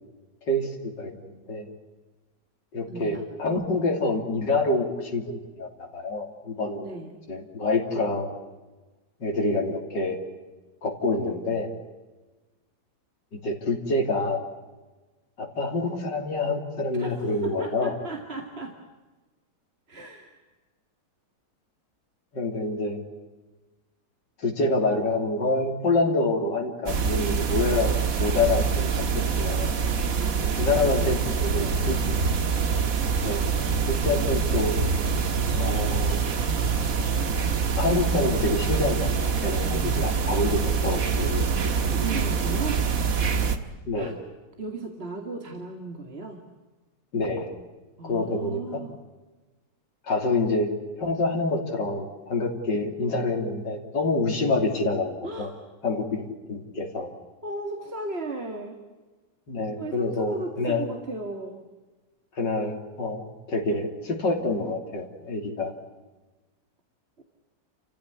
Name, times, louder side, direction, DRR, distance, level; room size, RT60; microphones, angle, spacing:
voice 1, 0.5-1.7 2.7-6.9 7.3-8.3 9.2-10.2 10.8-11.7 13.3-14.4 15.4-17.9 22.3-23.0 24.4-27.9 28.2-29.7 30.6-32.0 33.2-33.4 33.8-34.7 35.6-36.2 37.8-41.5 43.9-44.1 47.1-47.6 48.0-48.6 50.0-50.7 51.0-55.5 55.8-57.1 59.5-60.8 62.3-65.7, left 2 dB, 80° left, 1 dB, 3.7 m, -27 dB
voice 2, 2.8-3.2 6.8-7.1 16.9-18.8 19.9-20.4 30.1-32.5 41.6-42.8 43.9-44.1 44.6-46.4 48.0-49.0 55.2-55.6 57.4-58.8 59.7-61.6 67.2-67.3, right 2 dB, 35° right, 4 dB, 2.3 m, -36 dB
sound 1, 26.9-43.6, right 5 dB, 55° right, 1.9 m, -25 dB
29.5 x 15.5 x 9.9 m, 1.2 s
omnidirectional pair, 1.9 m